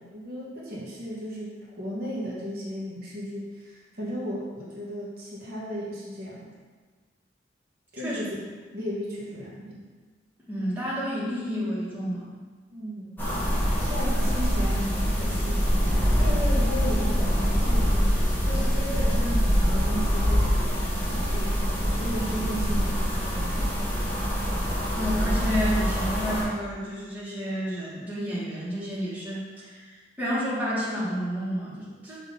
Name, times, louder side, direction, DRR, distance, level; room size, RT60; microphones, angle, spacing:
voice 1, 0.0-6.5 7.9-8.4 8.7-9.8 12.7-13.1 13.8-18.1 18.4-24.1, equal, 55° right, -6 dB, 1.3 m, -35 dB
voice 2, 10.5-12.3 24.9-29.9 30.2-32.2, equal, 10° right, -9 dB, 1.6 m, -30 dB
sound 1, 13.2-26.4, equal, 10° left, 1.2 m, -24 dB
5.9 x 3.0 x 5.5 m, 1.4 s
head